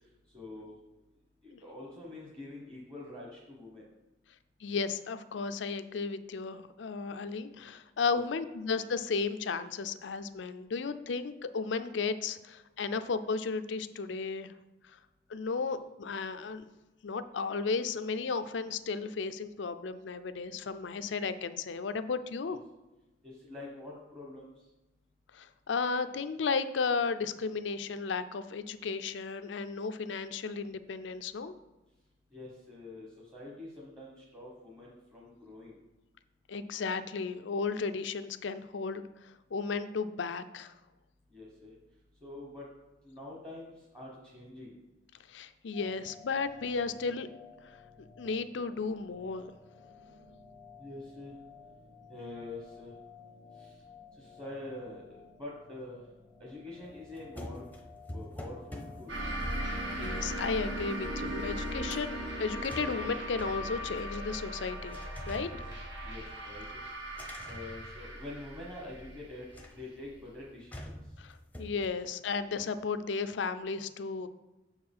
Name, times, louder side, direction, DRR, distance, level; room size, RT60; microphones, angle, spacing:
voice 1, 0.3-0.7 1.4-3.9 7.5-7.7 8.1-8.2 15.6-15.7 22.5-22.6 23.2-24.6 32.3-35.8 41.3-41.8 42.2-42.7 43.0-44.8 50.8-51.4 52.1-52.9 53.5-53.8 54.1-56.0 56.4-57.7 58.1-59.2 65.1-65.7 66.0-66.8 67.1-71.0, left 2 dB, 15° right, -4 dB, 1.2 m, -46 dB
voice 2, 4.6-14.5 15.3-16.6 17.0-22.6 25.3-31.5 36.5-39.0 39.5-40.7 45.3-47.3 48.2-49.5 60.0-65.0 65.3-65.5 71.2-74.3, left 4 dB, 75° left, 11 dB, 0.5 m, -34 dB
sound 1, 45.7-60.9, left 5 dB, 35° right, 1.5 m, -54 dB
sound 2, 56.8-61.2 61.5-62.1 62.5-64.4 64.9-66.4 67.1-68.6 69.5-70.0 70.7-71.9, left 1 dB, 10° left, 0.7 m, -47 dB
sound 3, 59.1-70.3, right 1 dB, 75° right, 1.7 m, -38 dB
6.7 x 4.8 x 5.5 m, 1.0 s
head